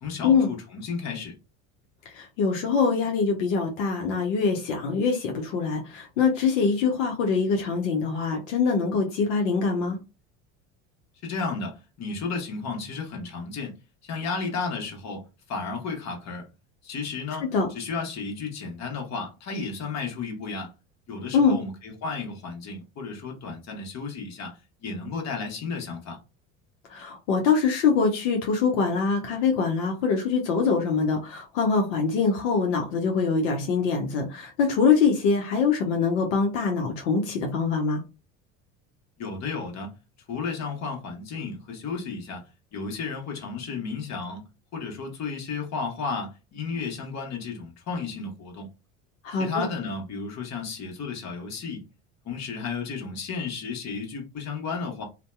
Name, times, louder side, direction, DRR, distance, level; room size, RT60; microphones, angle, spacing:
voice 1, 0.0-1.4 11.2-13.8 14.0-16.5 16.8-20.7 21.1-26.2 39.2-39.9 40.3-42.4 42.7-44.4 44.7-48.7 49.3-51.8 52.2-55.0, left 4 dB, 45° left, 1.2 m, -33 dB
voice 2, 2.1-10.0 17.5-17.7 21.3-21.6 26.9-38.0 49.2-49.6, left 5 dB, 80° left, 0.8 m, -24 dB
2.6 x 2.2 x 2.2 m
hypercardioid pair, 80°, 38 cm